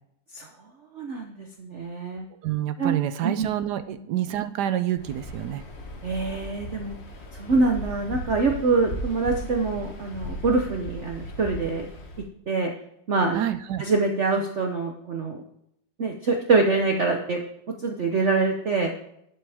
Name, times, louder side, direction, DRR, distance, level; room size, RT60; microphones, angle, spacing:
voice 1, 0.9-2.2 2.8-3.0 3.2-3.5 6.0-6.9 7.4-11.9 12.5-12.7 13.1-13.4 13.8-15.4 16.0-17.4 17.8-18.9, right 3 dB, 50° right, 2 dB, 1.0 m, -24 dB
voice 2, 2.4-5.6 13.3-13.8, right 11 dB, 70° right, 12 dB, 1.1 m, -27 dB
Waves surf, 5.0-12.3, equal, 40° left, 1.2 m, -37 dB
11.5 x 7.9 x 3.5 m, 0.76 s
omnidirectional pair, 2.0 m